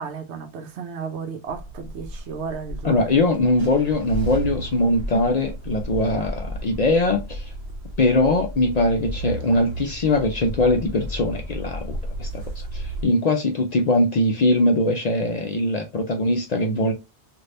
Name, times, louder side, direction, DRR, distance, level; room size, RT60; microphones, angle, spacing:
voice 1, 0.0-3.4, right 6 dB, 85° right, 1.0 m, -34 dB
sound 1, 1.5-13.0, equal, 65° right, 1.1 m, -33 dB
voice 2, 2.8-7.4 8.0-16.9, left 2 dB, 50° left, 0.5 m, -21 dB
3.2 x 2.6 x 2.6 m
omnidirectional pair, 1.1 m